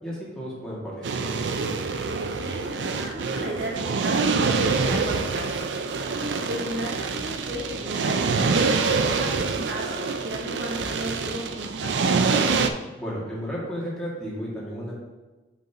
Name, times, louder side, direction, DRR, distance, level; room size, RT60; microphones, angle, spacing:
voice 1, 0.0-1.3 13.0-14.9, equal, 5° left, -7 dB, 2.1 m, -33 dB
sound 1, 1.0-12.7, right 4 dB, 90° right, 0.4 m, -25 dB
voice 2, 2.0-5.5 6.1-12.4, right 1 dB, 65° right, 0 dB, 1.0 m, -35 dB
7.7 x 5.4 x 2.9 m, 1.2 s
head